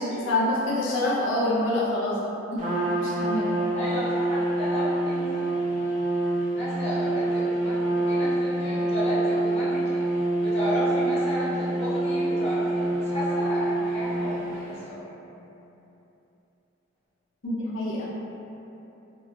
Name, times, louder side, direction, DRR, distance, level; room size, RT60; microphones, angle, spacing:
voice 1, 0.2-2.6 3.0-3.5 17.4-18.1, left 1 dB, 90° left, -7 dB, 0.5 m, -26 dB
Trumpet, 2.6-14.7, right 2 dB, 40° right, 0.4 m, -26 dB
voice 2, 3.7-5.5 6.5-10.0 10.4-15.0, equal, 35° left, -11 dB, 0.7 m, -33 dB
2.9 x 2.2 x 2.4 m, 3.0 s
head